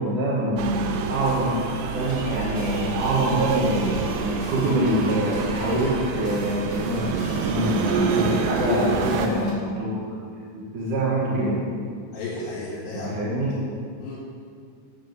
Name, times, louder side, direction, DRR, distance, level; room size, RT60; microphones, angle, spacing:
voice 1, 0.0-10.2 10.5-11.6 13.0-13.5, right 1 dB, 50° right, -7 dB, 2.7 m, -25 dB
sound 1, 0.6-9.3, right 6 dB, 85° right, 2.5 m, -28 dB
sound 2, 2.0-9.5, left 1 dB, 35° left, 3.6 m, -39 dB
voice 2, 8.2-8.8 12.1-13.1 14.0-14.2, left 4 dB, 65° left, -8 dB, 3.7 m, -31 dB
10.0 x 9.0 x 7.9 m, 2.2 s
omnidirectional pair, 5.8 m